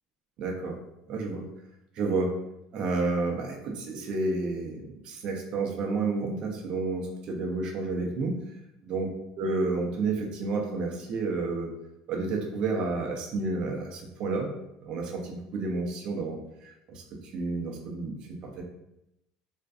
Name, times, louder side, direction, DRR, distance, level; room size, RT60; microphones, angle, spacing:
voice 1, 0.4-0.8 1.1-1.4 1.9-2.3 2.7-8.4 8.8-9.1 9.4-11.7 12.1-14.5 14.8-18.6, right 3 dB, 40° right, 1 dB, 0.5 m, -30 dB
2.5 x 2.2 x 2.3 m, 0.85 s
cardioid pair, 155°, 2 cm